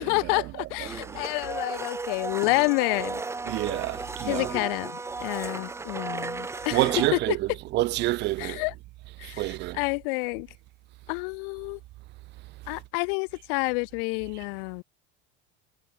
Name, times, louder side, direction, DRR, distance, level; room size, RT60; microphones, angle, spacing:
voice 1, 0.0-3.2 4.2-7.4 8.4-8.7 9.2-10.5 11.1-11.8 12.7-14.8, left 35 dB, 60° left, 2.6 m, -29 dB
Domestic sounds home sounds, 0.8-7.1, right 3 dB, 10° right, 2.1 m, -35 dB
voice 2, 3.5-4.5 6.7-8.6 9.2-9.8, right 18 dB, 35° right, 0.9 m, -27 dB
cardioid pair, 180°, 31 cm